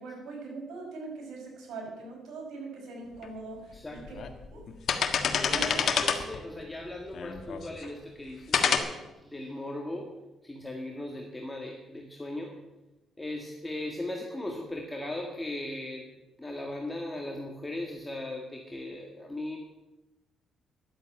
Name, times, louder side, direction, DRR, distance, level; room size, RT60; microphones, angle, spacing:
voice 1, 0.0-4.2 4.5-4.7 5.5-5.8, right 3 dB, 80° right, -1 dB, 5.5 m, -41 dB
sound 1, 3.2-3.3 4.0-4.3 4.7-6.4 7.1-7.9 8.5-8.8, left 7 dB, 60° left, 1.5 m, -27 dB
voice 2, 3.7-4.1 5.4-10.1 10.4-12.5 13.2-16.1 16.4-19.6, left 1 dB, 10° left, 0 dB, 1.8 m, -38 dB
11.0 x 8.2 x 8.8 m, 1.0 s
cardioid pair, 90°, 0 cm